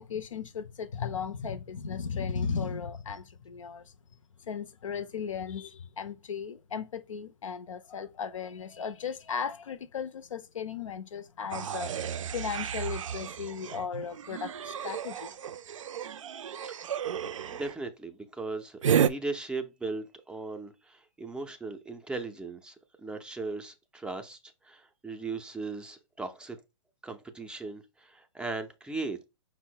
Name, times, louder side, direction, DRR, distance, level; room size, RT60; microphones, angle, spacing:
voice 1, 0.0-3.9 4.4-12.0 12.3-15.3, left 6 dB, 85° left, 0.6 m, -36 dB
sound 1, 11.5-17.8 18.8-19.1, right 8 dB, 80° right, 0.4 m, -32 dB
voice 2, 17.2-26.6 27.0-29.3, right 3 dB, 5° right, 0.4 m, -38 dB
5.3 x 2.0 x 4.5 m
hypercardioid pair, 135°, 16 cm